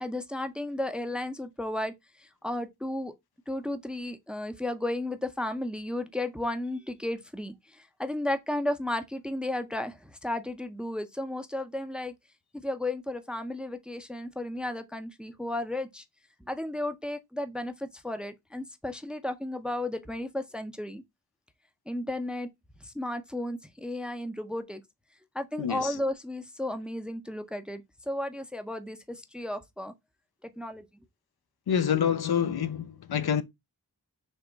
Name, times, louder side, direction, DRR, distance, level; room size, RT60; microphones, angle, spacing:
voice 1, 0.0-1.9 2.4-3.1 3.5-7.5 8.0-12.1 12.5-16.0 16.5-21.0 21.9-22.5 22.8-24.8 25.3-29.9 30.6-30.8, left 1 dB, ahead, 0.5 m, -33 dB
voice 2, 25.6-26.0 31.7-33.4, left 8 dB, 70° left, 0.5 m, -27 dB
3.5 x 2.9 x 3.8 m
wide cardioid pair, 75°, 40 cm